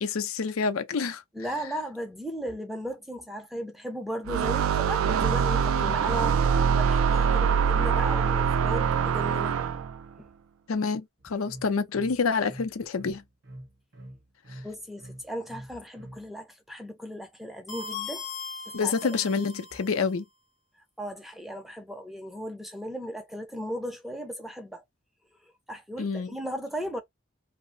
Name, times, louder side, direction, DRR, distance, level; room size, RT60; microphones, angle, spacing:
voice 1, 0.0-1.2 5.8-5.9 10.7-13.2 18.7-20.2 26.0-26.3, left 5 dB, 90° left, 0.5 m, -28 dB
voice 2, 1.3-9.5 14.6-18.3 18.7-18.9 21.0-24.8 25.7-27.0, equal, ahead, 0.4 m, -36 dB
sound 1, 4.3-10.0, right 7 dB, 85° right, 0.3 m, -24 dB
sound 2, 11.2-16.3, right 1 dB, 50° right, 0.7 m, -45 dB
sound 3, 17.7-20.1, left 5 dB, 55° left, 0.9 m, -39 dB
2.8 x 2.0 x 2.6 m
head